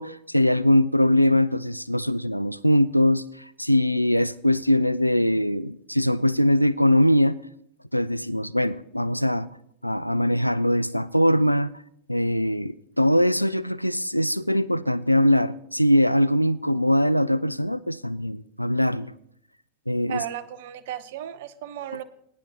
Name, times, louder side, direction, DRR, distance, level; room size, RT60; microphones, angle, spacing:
voice 1, 0.0-3.2 3.6-7.4 7.9-9.5 9.8-11.7 12.1-19.1 19.9-20.2, left 1 dB, 90° left, 18 dB, 0.3 m, -22 dB
voice 2, 20.1-22.0, right 11 dB, 55° right, 14 dB, 0.6 m, -35 dB
18.0 x 10.0 x 2.8 m, 0.73 s
figure-of-eight pair, 90°, 0 cm